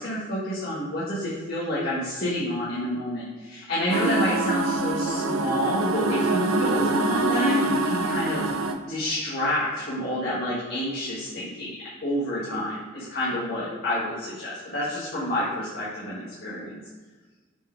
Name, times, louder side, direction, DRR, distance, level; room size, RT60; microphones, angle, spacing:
voice 1, 0.0-8.4 8.9-11.7 12.0-16.8, left 1 dB, 50° left, -9 dB, 1.6 m, -29 dB
sound 1, 3.9-8.7, right 2 dB, 85° right, 0.7 m, -24 dB
6.8 x 4.8 x 4.5 m, 1.4 s
head